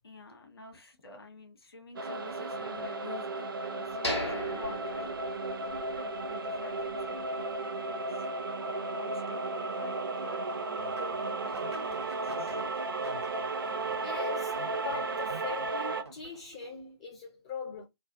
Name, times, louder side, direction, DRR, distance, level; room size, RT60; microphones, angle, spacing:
voice 1, 0.0-8.3 8.6-12.6, left 2 dB, 60° left, 1.2 m, -49 dB
sound 1, 2.0-16.0, right 3 dB, 50° right, 0.5 m, -34 dB
sound 2, 4.0-6.0 6.3-6.4 6.9-7.1, left 1 dB, 80° left, 1.4 m, -36 dB
sound 3, 10.8-16.7, right 3 dB, 75° right, 0.9 m, -49 dB
voice 2, 14.0-17.8, left 6 dB, 15° left, 0.4 m, -41 dB
3.3 x 2.2 x 2.6 m
figure-of-eight pair, 140°, 14 cm